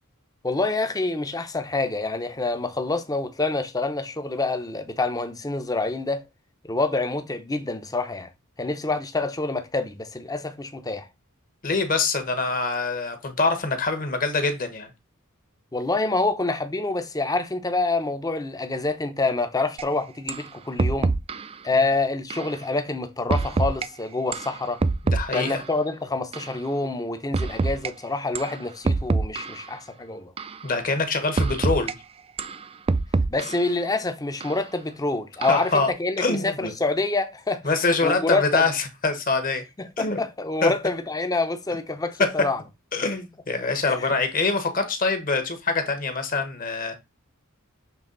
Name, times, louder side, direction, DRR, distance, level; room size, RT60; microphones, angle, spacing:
voice 1, 0.4-6.2 6.6-8.3 8.6-11.1 15.7-21.1 21.6-24.8 25.3-30.3 33.3-37.7 38.0-38.7 39.8-42.6 43.8-44.1, left 3 dB, 15° left, 0.7 m, -27 dB
voice 2, 11.6-14.9 25.0-25.6 30.6-32.0 35.5-35.9 36.2-36.7 37.6-39.6 40.0-40.2 40.6-40.7 42.9-47.0, left 3 dB, 40° left, 1.2 m, -24 dB
sound 1, 19.8-19.9 20.3-20.5 20.8-21.5 22.3-22.5 23.3-23.9 24.3-25.7 26.3-26.5 27.3-27.9 28.4-28.6 28.9-29.7 30.4-30.6 31.4-31.9 32.4-33.7 34.4-34.6 35.4-35.8, right 3 dB, 25° right, 0.4 m, -25 dB
7.1 x 3.4 x 3.9 m
head